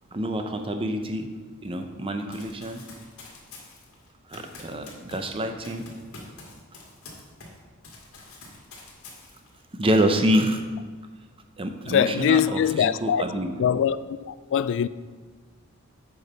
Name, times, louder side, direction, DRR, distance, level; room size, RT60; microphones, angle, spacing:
voice 1, 0.1-1.3 1.6-2.8 4.3-5.9 9.8-10.6 11.6-13.5, right 1 dB, 25° right, 0.6 m, -26 dB
Run, 2.3-7.6 7.8-9.6, left 2 dB, 80° left, 2.0 m, -46 dB
voice 2, 11.9-13.2 13.6-14.0 14.3-14.9, left 8 dB, 60° left, 0.3 m, -22 dB
8.0 x 4.8 x 5.5 m
head